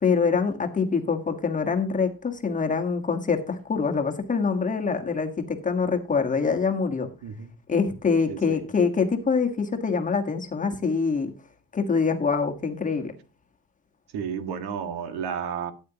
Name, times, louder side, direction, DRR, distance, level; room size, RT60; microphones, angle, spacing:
voice 1, 0.0-7.1 7.7-11.3 11.7-13.1, left 5 dB, 20° left, 1.4 m, -25 dB
voice 2, 8.3-8.6 14.1-15.7, right 7 dB, 75° right, 1.7 m, -32 dB
13.0 x 9.4 x 2.9 m
cardioid pair, 165°, 39 cm